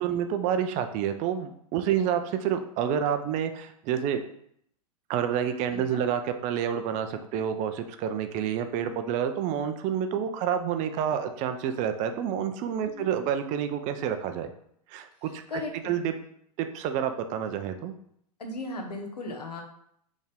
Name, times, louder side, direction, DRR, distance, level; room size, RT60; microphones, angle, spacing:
voice 1, 0.0-4.2 5.1-14.5 14.9-15.4 15.8-16.1 16.6-17.9, right 9 dB, 40° right, 8 dB, 0.5 m, -28 dB
voice 2, 5.7-6.0 13.0-13.1 15.5-16.0 18.4-19.6, left 2 dB, 90° left, 3 dB, 1.0 m, -37 dB
4.2 x 3.6 x 3.5 m, 0.69 s
hypercardioid pair, 110°, 20 cm